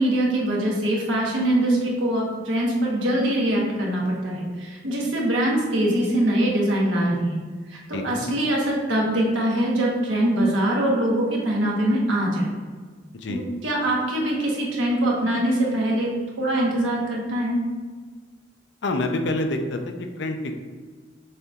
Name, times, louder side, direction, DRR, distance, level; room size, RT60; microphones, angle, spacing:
voice 1, 0.0-7.4 7.9-12.5 13.3-16.1 16.4-17.6, right 1 dB, 85° right, -2 dB, 1.1 m, -23 dB
voice 2, 7.9-8.3 13.2-13.4 18.8-20.5, left 2 dB, 65° left, 5 dB, 0.5 m, -27 dB
6.6 x 2.8 x 2.4 m, 1.5 s
head